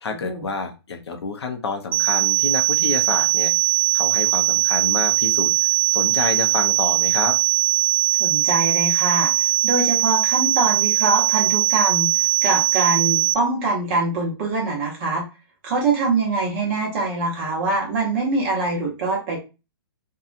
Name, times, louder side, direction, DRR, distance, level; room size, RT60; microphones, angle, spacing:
voice 1, 0.0-3.5 3.9-5.5 5.9-7.4, left 4 dB, 90° left, 5 dB, 0.7 m, -28 dB
sound 1, 1.9-13.3, right 19 dB, 55° right, 0.4 m, -20 dB
voice 2, 8.2-12.1 12.4-15.2 15.6-19.4, right 3 dB, 25° right, -2 dB, 0.8 m, -23 dB
2.7 x 2.3 x 2.5 m, 0.29 s
hypercardioid pair, 170°, 13 cm